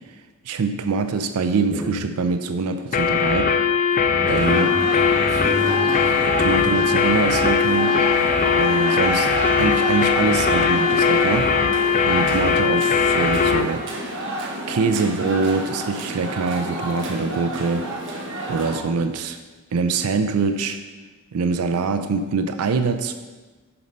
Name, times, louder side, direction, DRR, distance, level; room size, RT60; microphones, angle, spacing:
voice 1, 0.5-3.5 4.3-4.7 6.4-8.0 8.6-11.6 12.0-13.9 14.7-17.9 18.5-19.4 19.7-20.8 21.3-23.1, right 4 dB, 90° right, 8 dB, 0.5 m, -24 dB
sound 1, 2.9-13.7, left 6 dB, 35° left, 0.4 m, -20 dB
voice 2, 4.0-6.4 6.7-6.9, equal, 15° right, -3 dB, 1.5 m, -31 dB
sound 2, 4.3-18.8, right 1 dB, 60° right, 1.2 m, -29 dB
7.1 x 5.2 x 5.3 m, 1.3 s
head